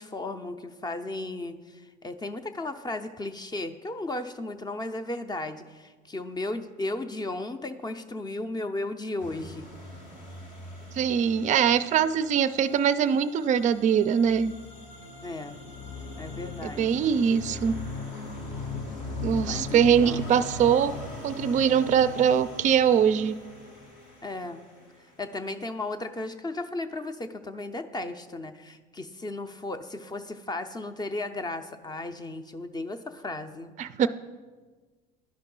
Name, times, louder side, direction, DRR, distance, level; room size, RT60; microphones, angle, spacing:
voice 1, 0.0-9.7 15.2-15.6 16.2-17.1 19.4-20.2 24.2-24.6 25.2-33.7, left 2 dB, 20° left, 9 dB, 0.5 m, -35 dB
sound 1, 9.2-25.3, left 3 dB, 90° left, 2.4 m, -40 dB
voice 2, 10.9-14.5 16.6-17.7 19.2-20.9 21.2-23.3 33.8-34.1, right 8 dB, 35° right, 13 dB, 0.4 m, -22 dB
11.5 x 5.3 x 3.8 m, 1.4 s
supercardioid pair, 75°, 21 cm